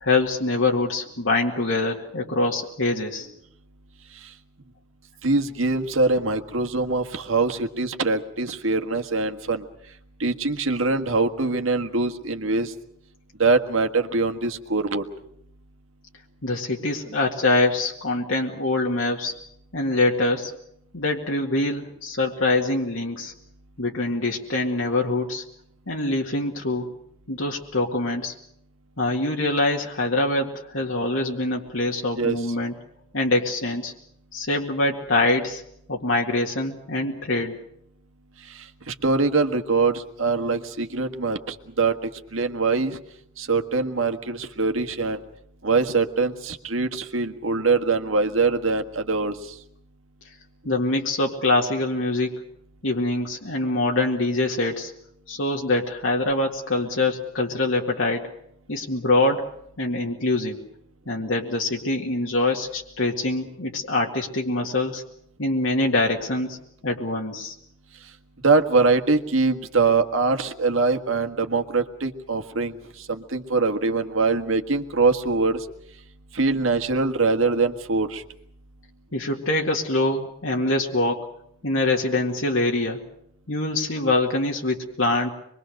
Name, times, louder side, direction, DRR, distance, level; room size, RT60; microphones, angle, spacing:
voice 1, 0.0-3.3 16.4-19.3 19.7-20.5 20.9-23.3 23.8-25.4 25.9-26.9 27.3-28.3 29.0-32.7 33.1-33.9 34.3-35.6 35.9-37.6 50.7-52.4 52.8-54.9 55.3-58.3 58.7-59.5 59.8-60.6 61.1-65.0 65.4-66.6 66.8-67.6 79.1-81.3 81.6-83.0 83.5-85.3, left 2 dB, 75° left, 0 dB, 2.1 m, -24 dB
voice 2, 5.2-9.6 10.2-12.7 13.4-15.0 32.2-32.4 38.6-43.0 43.4-45.2 45.6-49.5 68.4-72.8 73.1-75.7 76.3-78.2, right 3 dB, 85° right, 6 dB, 1.7 m, -23 dB
25.0 x 22.5 x 6.6 m, 0.73 s
head